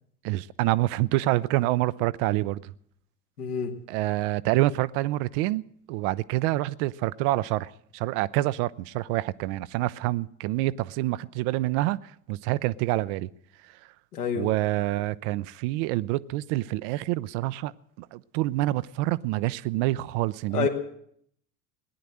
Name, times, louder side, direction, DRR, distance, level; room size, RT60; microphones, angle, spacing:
voice 1, 0.2-2.7 3.9-13.3 13.6-13.8 14.3-17.7 18.0-20.7, right 17 dB, 55° right, 0.6 m, -27 dB
voice 2, 3.4-3.7 14.1-14.5 20.5-20.7, left 6 dB, 75° left, 2.0 m, -27 dB
18.0 x 10.0 x 7.6 m
figure-of-eight pair, 70°, 45 cm